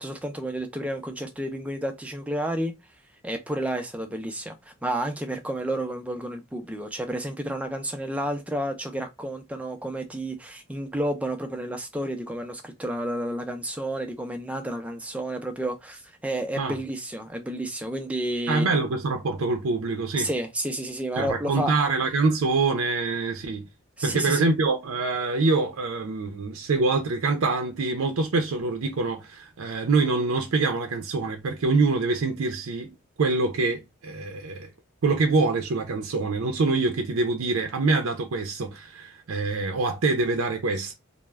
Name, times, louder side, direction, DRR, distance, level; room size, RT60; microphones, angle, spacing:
voice 1, 0.0-2.7 3.2-18.9 20.2-21.7 24.0-24.5, right 1 dB, 5° right, 0.3 m, -31 dB
voice 2, 18.5-20.3 21.2-23.7 24.0-32.9 33.2-34.7 35.0-40.9, right 3 dB, 75° right, 0.5 m, -25 dB
2.2 x 2.0 x 3.1 m
head